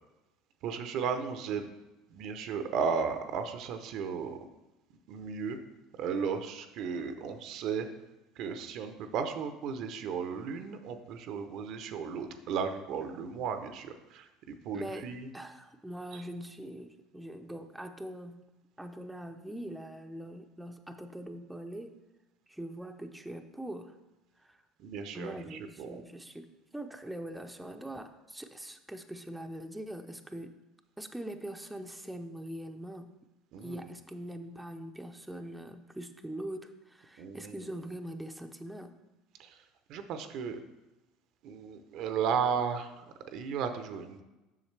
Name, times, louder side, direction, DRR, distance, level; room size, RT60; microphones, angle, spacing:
voice 1, 0.6-1.7 2.1-4.4 5.1-5.6 6.0-7.9 8.4-15.3 16.1-16.2 24.8-26.0 33.5-33.8 37.2-37.6 39.4-39.6 39.9-40.6 41.4-44.2, right 6 dB, 60° right, 8 dB, 0.6 m, -35 dB
voice 2, 14.7-18.4 18.8-21.9 22.5-24.0 24.4-24.6 25.1-30.6 31.0-33.1 33.6-39.0, right 1 dB, 5° right, 5 dB, 0.6 m, -42 dB
7.3 x 6.4 x 3.2 m, 1.0 s
hypercardioid pair, 80°, 0 cm